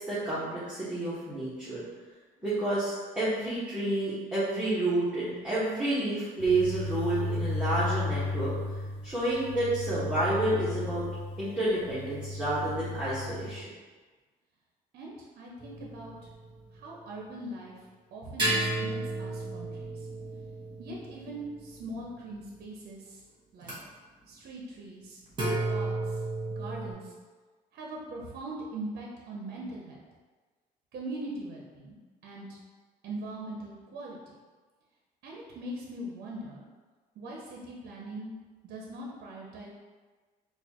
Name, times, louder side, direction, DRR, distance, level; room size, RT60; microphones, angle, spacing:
voice 1, 0.1-1.8 2.4-8.5 9.0-11.0 11.4-13.7, right 2 dB, 5° right, -13 dB, 1.2 m, -29 dB
sound 1, 6.4-13.6, left 2 dB, 30° left, 0.7 m, -35 dB
voice 2, 14.9-16.1 16.7-17.7 18.1-20.1 20.8-23.2 23.5-23.7 24.3-25.2 25.7-26.2 26.5-27.1 27.7-30.0 30.9-32.0 32.2-32.6 33.0-34.3 35.2-36.6 37.2-38.3 38.6-39.7, right 1 dB, 65° right, -2 dB, 0.7 m, -41 dB
sound 2, 15.6-16.8 18.4-22.1 23.6-23.7 25.3-26.9, right 2 dB, 25° right, 1.4 m, -33 dB
4.0 x 2.4 x 2.9 m, 1.4 s
cardioid pair, 110°, 17 cm